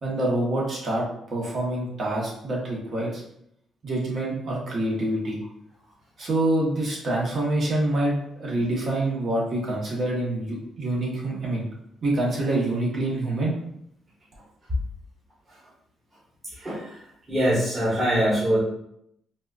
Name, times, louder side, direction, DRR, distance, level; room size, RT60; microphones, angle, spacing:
voice 1, 0.0-1.0 1.3-3.2 3.8-5.4 6.2-11.7 12.0-13.5, right 1 dB, 50° right, -4 dB, 1.3 m, -26 dB
voice 2, 16.5-17.0 17.3-18.6, equal, 25° right, -9 dB, 1.4 m, -23 dB
4.0 x 2.5 x 2.5 m, 0.74 s
cardioid pair, 90°, 0 cm